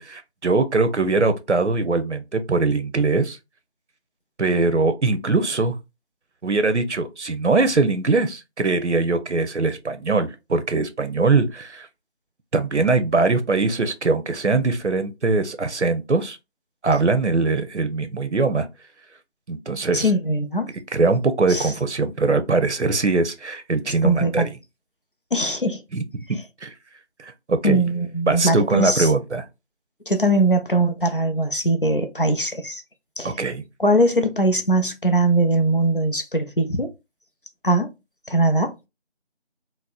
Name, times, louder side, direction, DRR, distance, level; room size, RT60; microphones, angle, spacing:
voice 1, 0.0-3.4 4.4-5.7 6.4-11.9 12.5-16.4 16.8-18.7 19.5-20.1 20.9-24.5 25.9-26.0 26.6-26.7 27.2-27.8 28.3-29.4 33.2-33.6, right 3 dB, 90° right, 0.7 m, -21 dB
voice 2, 19.9-20.7 21.5-21.7 24.0-24.5 25.3-25.8 27.6-29.1 30.1-32.8 33.2-33.4 33.8-36.9 37.6-37.9 38.3-38.7, right 1 dB, 50° left, 0.6 m, -21 dB
4.1 x 2.1 x 2.4 m
figure-of-eight pair, 175°, 34 cm